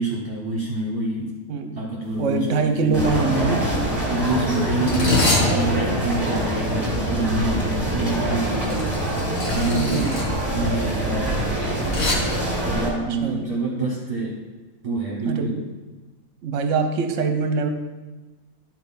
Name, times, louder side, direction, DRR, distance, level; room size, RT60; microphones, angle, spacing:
voice 1, 0.0-1.3 1.8-3.7 4.1-8.9 9.5-11.6 12.6-14.4 14.8-15.6, right 2 dB, 45° right, -3 dB, 1.3 m, -27 dB
voice 2, 1.5-1.8 2.2-3.7 4.8-5.2 9.7-10.2 12.6-12.8 13.2-13.5 15.3-15.6 16.4-17.7, right 4 dB, 60° right, 6 dB, 1.1 m, -24 dB
sound 1, 2.1-2.3 2.5-2.9 3.6-12.1, left 2 dB, 55° left, 1.7 m, -27 dB
sound 2, 2.9-12.9, right 1 dB, 10° right, 2.1 m, -25 dB
12.0 x 4.6 x 4.0 m, 1.2 s
omnidirectional pair, 1.5 m